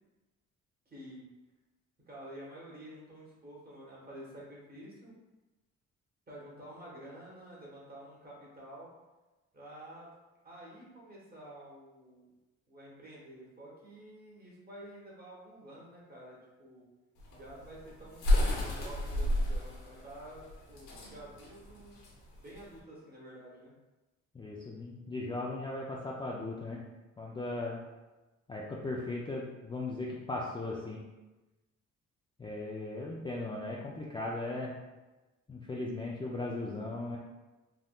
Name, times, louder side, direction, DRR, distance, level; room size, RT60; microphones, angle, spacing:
voice 1, 0.9-1.2 2.1-5.1 6.3-8.9 9.5-10.1 10.4-12.3 12.7-16.8 17.3-22.0 22.4-23.7, right 1 dB, 30° right, -5 dB, 1.3 m, -50 dB
sound 1, 17.2-22.8, left 1 dB, 90° left, 0.8 m, -31 dB
voice 2, 24.3-26.8 27.2-27.8 28.5-31.0 32.4-34.8 35.5-37.2, left 2 dB, 15° left, -4 dB, 0.3 m, -37 dB
3.5 x 2.6 x 2.3 m, 1.1 s
cardioid pair, 90°, 30 cm